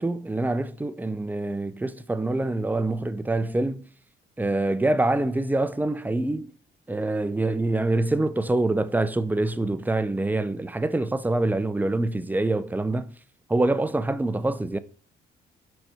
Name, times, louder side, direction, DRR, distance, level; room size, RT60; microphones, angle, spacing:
voice 1, 0.0-3.9 4.4-6.5 6.9-13.1 13.5-14.8, right 2 dB, 10° right, 0.5 m, -25 dB
6.2 x 4.0 x 4.8 m
cardioid pair, 90°, 20 cm